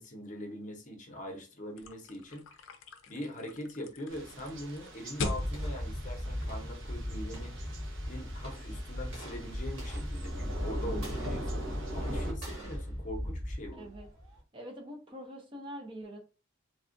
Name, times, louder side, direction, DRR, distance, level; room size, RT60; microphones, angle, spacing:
voice 1, 0.0-2.6 3.1-7.5 8.1-11.6 11.9-13.9, left 1 dB, 40° left, 0.8 m, -42 dB
sound 1, 1.8-7.1, left 3 dB, 65° left, 0.5 m, -42 dB
Thunder / Rain, 4.1-12.3, right 1 dB, 65° right, 0.8 m, -43 dB
sound 2, 5.2-14.4, equal, 85° right, 1.7 m, -37 dB
voice 2, 14.5-16.2, equal, 25° right, 0.6 m, -44 dB
3.4 x 2.3 x 2.5 m
head